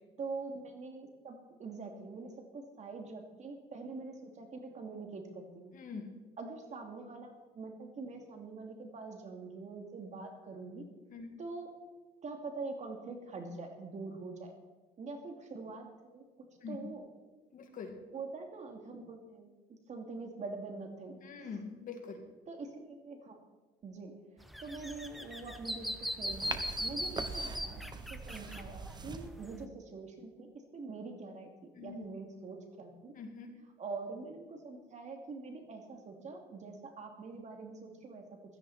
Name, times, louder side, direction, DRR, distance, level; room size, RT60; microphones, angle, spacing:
voice 1, 0.2-5.7 6.4-10.8 11.4-11.7 12.2-14.5 15.0-17.1 18.1-21.5 22.5-23.4 23.8-31.5 31.8-33.1 33.8-38.2, right 3 dB, 45° right, 3 dB, 2.8 m, -44 dB
voice 2, 5.7-6.1 11.1-11.3 16.6-16.8 17.5-17.9 21.2-22.2 31.7-32.1 33.1-33.5, left 5 dB, 50° left, 4 dB, 2.5 m, -44 dB
sound 1, 24.4-29.7, equal, ahead, 1.1 m, -39 dB
sound 2, 26.3-29.3, right 4 dB, 25° right, 1.1 m, -42 dB
16.5 x 13.0 x 4.4 m, 1.2 s
cardioid pair, 110°, 17 cm